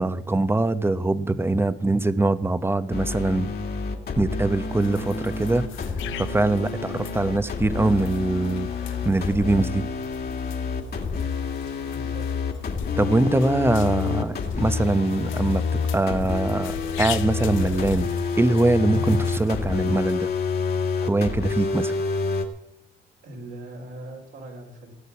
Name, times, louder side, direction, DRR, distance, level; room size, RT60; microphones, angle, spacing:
voice 1, 0.0-3.5 4.2-5.6 6.2-9.9 13.0-18.1 18.4-20.3 21.0-21.9, right 2 dB, 10° right, 13 dB, 0.9 m, -23 dB
sound 1, 2.9-22.5, left 5 dB, 55° left, 2.4 m, -28 dB
sound 2, 4.7-20.2, left 12 dB, 80° left, 0.8 m, -41 dB
voice 2, 11.9-12.5 23.2-24.9, right 1 dB, 75° right, -2 dB, 4.0 m, -40 dB
18.0 x 6.7 x 8.5 m, 0.83 s
cardioid pair, 90°, 20 cm